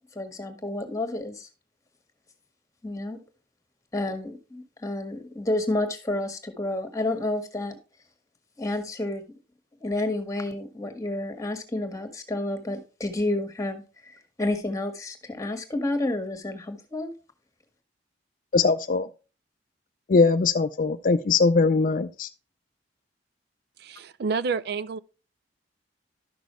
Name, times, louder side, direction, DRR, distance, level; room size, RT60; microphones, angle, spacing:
voice 1, 0.1-1.5 2.8-3.2 3.9-7.8 8.6-9.2 9.8-17.1, left 2 dB, 20° left, 1.5 m, -30 dB
voice 2, 18.5-19.1 20.1-22.3, left 4 dB, 45° left, 0.4 m, -21 dB
voice 3, 23.8-25.0, right 5 dB, 60° right, 0.4 m, -29 dB
12.5 x 6.1 x 3.1 m
head